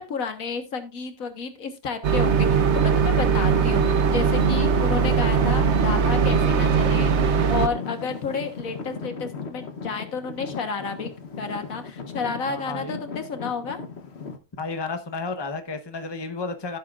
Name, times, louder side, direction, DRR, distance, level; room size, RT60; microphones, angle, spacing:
voice 1, 0.0-13.8, left 5 dB, 90° left, 1.8 m, -31 dB
sound 1, 2.0-7.7, right 6 dB, 60° right, 1.2 m, -20 dB
Traffic noise roadway noise / Engine, 3.5-14.4, left 5 dB, 55° left, 1.4 m, -36 dB
voice 2, 12.5-13.0 14.5-16.8, left 3 dB, 20° left, 1.0 m, -32 dB
15.0 x 7.4 x 2.5 m
omnidirectional pair, 1.4 m